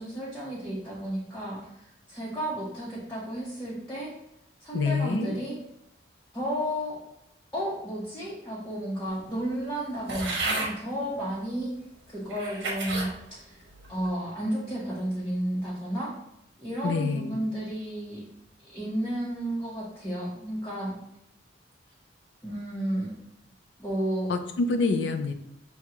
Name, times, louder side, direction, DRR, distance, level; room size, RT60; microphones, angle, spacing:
voice 1, 0.0-4.1 4.6-5.6 6.3-7.0 7.5-11.7 12.1-13.6 13.9-16.1 16.6-18.2 18.6-20.9 22.4-23.1 23.8-24.3, right 1 dB, 15° left, -8 dB, 0.9 m, -32 dB
voice 2, 4.7-5.4 16.8-17.4 24.3-25.3, left 3 dB, 70° left, 7 dB, 0.4 m, -27 dB
sound 1, 10.1-10.7 11.5-11.6 12.3-13.1 13.7-14.1, right 2 dB, 85° right, 1.0 m, -31 dB
6.1 x 2.3 x 2.8 m, 0.83 s
head